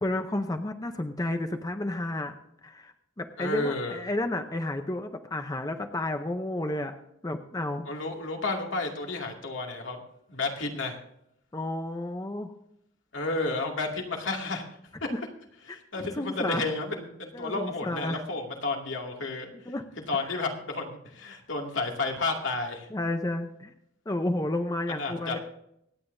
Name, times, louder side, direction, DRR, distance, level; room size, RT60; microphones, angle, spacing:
voice 1, 0.0-2.3 2.6-6.9 7.2-7.9 11.5-12.5 15.1-15.2 15.7-16.6 17.3-18.3 19.5-19.8 20.2-20.4 22.9-23.7 24.1-25.4, left 1 dB, 20° left, 6 dB, 0.7 m, -31 dB
voice 2, 3.4-4.0 7.8-10.0 10.3-11.0 13.1-14.7 15.0-15.1 15.7-19.5 20.1-22.9 24.9-25.4, left 3 dB, 75° left, 1 dB, 2.4 m, -31 dB
25.0 x 9.2 x 2.7 m, 0.76 s
head